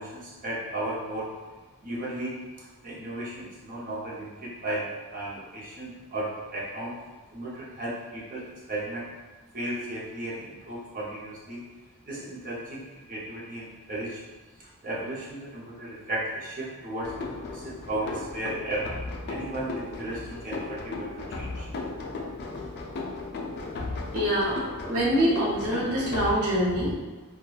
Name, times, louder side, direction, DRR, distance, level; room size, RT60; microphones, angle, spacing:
voice 1, 0.0-1.3 1.8-2.4 2.8-6.9 7.3-9.1 9.5-11.6 12.1-12.8 13.1-14.2 14.8-18.8 19.3-21.7, right 1 dB, 40° right, -6 dB, 0.6 m, -35 dB
sound 1, 17.0-26.3, left 3 dB, 45° left, 0.3 m, -36 dB
voice 2, 24.1-24.6 24.9-26.9, equal, 80° right, -5 dB, 0.8 m, -24 dB
3.0 x 2.2 x 2.3 m, 1.3 s
head